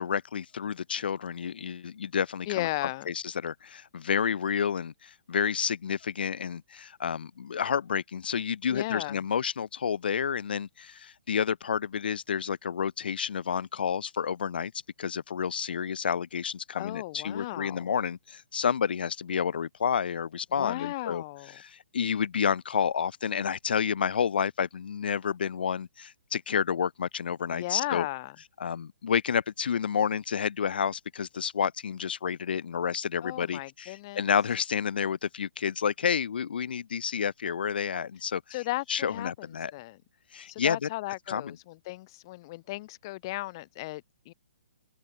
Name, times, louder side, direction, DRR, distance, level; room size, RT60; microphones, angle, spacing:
voice 1, 0.0-2.7 3.1-14.7 15.0-21.2 21.6-28.1 28.6-38.4 38.9-39.7 40.3-40.9 41.3-41.6, left 7 dB, 65° left, 0.5 m, -30 dB
voice 2, 2.5-3.1 8.7-9.2 16.7-17.9 20.6-21.6 27.5-28.4 33.2-34.3 38.5-39.5 39.7-40.0 40.5-44.3, left 19 dB, 25° left, 1.1 m, -35 dB
hypercardioid pair, 165°, 6 cm